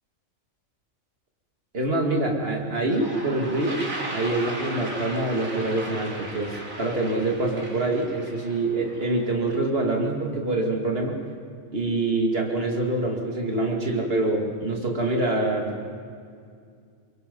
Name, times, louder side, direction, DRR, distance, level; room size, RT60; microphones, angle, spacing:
voice 1, 1.7-3.8 4.1-11.2 11.7-16.0, right 2 dB, 50° right, 1 dB, 2.8 m, -25 dB
Toilet flush, 2.4-2.5 2.8-9.6, right 1 dB, 90° right, 3.3 m, -36 dB
23.5 x 22.5 x 5.5 m, 2.2 s
omnidirectional pair, 1.4 m